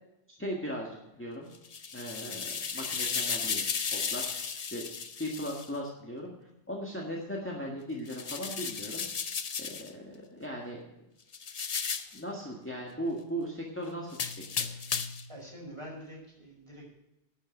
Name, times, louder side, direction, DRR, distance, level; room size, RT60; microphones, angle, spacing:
voice 1, 0.3-0.9 1.2-1.5 1.9-3.6 3.9-4.3 4.7-4.9 5.2-6.3 6.7-9.1 9.6-11.1 12.1-14.8, equal, 10° left, -2 dB, 1.7 m, -38 dB
sound 1, 1.5-5.7 8.1-9.9 11.3-12.2 14.1-15.3, left 6 dB, 40° left, 0.7 m, -34 dB
voice 2, 15.3-16.9, equal, 25° right, -3 dB, 5.4 m, -45 dB
11.5 x 7.2 x 7.9 m, 0.90 s
omnidirectional pair, 1.2 m